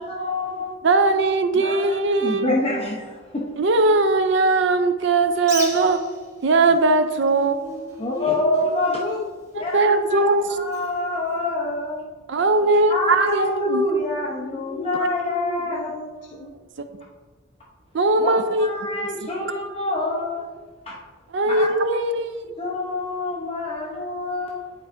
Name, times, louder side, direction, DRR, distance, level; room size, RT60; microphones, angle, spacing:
voice 1, 0.0-0.7 1.5-1.9 2.2-3.5 8.0-9.0 9.6-9.8 10.1-10.2 10.6-12.0 12.9-15.9 18.2-20.5 20.9-21.0 21.5-21.7 22.6-24.6, left 2 dB, 30° left, 0.8 m, -26 dB
voice 2, 0.8-2.6 3.6-6.0 6.4-7.7 9.7-10.5 12.3-13.9 15.0-15.1 16.4-17.0 17.9-18.7 21.3-22.6, right 3 dB, 60° right, 0.4 m, -20 dB
Bird, 5.4-12.0, right 2 dB, 15° right, 1.0 m, -40 dB
voice 3, 7.4-10.1 14.4-16.5, left 2 dB, 60° left, 0.5 m, -35 dB
10.5 x 4.6 x 2.5 m
head